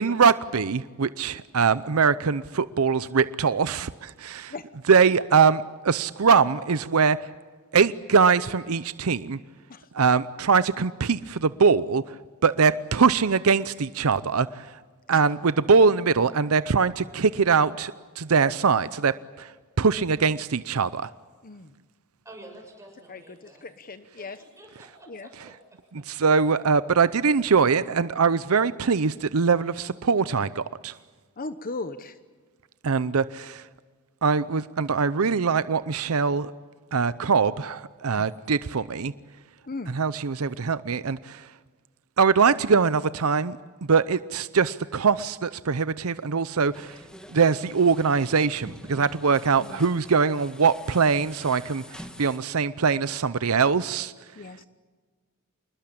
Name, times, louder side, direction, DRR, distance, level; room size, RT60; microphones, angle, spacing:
voice 1, 0.0-4.5 4.9-7.3 7.7-9.4 9.9-12.2 12.4-14.7 15.1-19.5 19.8-21.1 26.1-30.9 32.8-33.7 34.2-36.5 36.9-39.1 39.9-41.5 42.2-47.0 47.3-54.1, right 5 dB, 75° right, 15 dB, 0.7 m, -22 dB
voice 2, 22.2-23.7 24.2-25.5, right 1 dB, 15° right, 2 dB, 7.1 m, -49 dB
voice 3, 23.1-24.4 25.1-25.3 31.4-32.2 38.2-38.3 39.7-39.9 49.6-49.8 54.4-54.6, left 3 dB, 40° left, 11 dB, 1.0 m, -37 dB
sound 1, 46.7-52.4, equal, 5° left, 1.7 m, -46 dB
27.5 x 21.0 x 8.6 m, 1.4 s
head